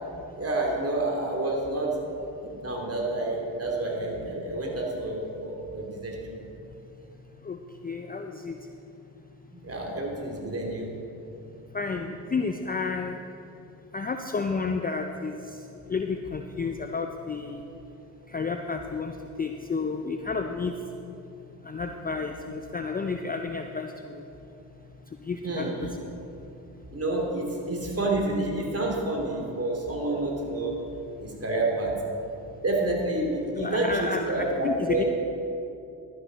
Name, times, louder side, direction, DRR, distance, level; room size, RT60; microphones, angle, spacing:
voice 1, 0.4-1.9 2.4-6.4 9.5-10.9 25.4-25.7 26.9-30.7 31.2-31.9 32.6-35.1, right 2 dB, 30° right, -1 dB, 3.0 m, -29 dB
voice 2, 7.4-8.6 11.7-13.2 13.9-15.4 15.9-17.6 18.3-19.1 19.4-20.7 21.6-24.2 25.2-26.0 33.6-35.0, left 4 dB, 20° left, 5 dB, 0.6 m, -31 dB
12.0 x 10.5 x 4.1 m, 2.8 s
hypercardioid pair, 60°, 48 cm